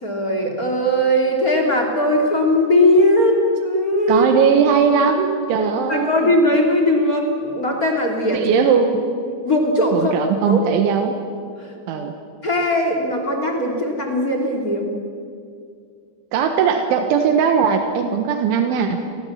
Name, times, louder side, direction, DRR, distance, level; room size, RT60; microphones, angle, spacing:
voice 1, 0.0-4.3 5.5-8.4 9.4-10.1 10.5-10.6 11.6-11.7 12.4-14.9, left 1 dB, 25° left, 2 dB, 2.5 m, -19 dB
voice 2, 4.1-6.3 8.3-9.1 9.9-11.2 11.9-12.1 16.3-19.0, right 6 dB, 85° right, 5 dB, 3.8 m, -19 dB
29.0 x 22.5 x 7.4 m, 2.3 s
omnidirectional pair, 5.4 m